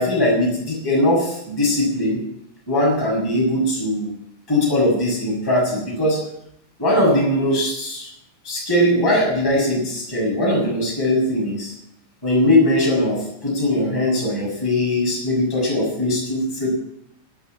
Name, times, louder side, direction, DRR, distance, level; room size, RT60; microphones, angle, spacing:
voice 1, 0.0-2.2 2.7-4.1 4.5-6.2 6.8-8.1 8.4-11.7 12.2-16.7, left 1 dB, 5° left, -4 dB, 6.2 m, -20 dB
12.5 x 11.5 x 8.9 m, 0.75 s
omnidirectional pair, 5.8 m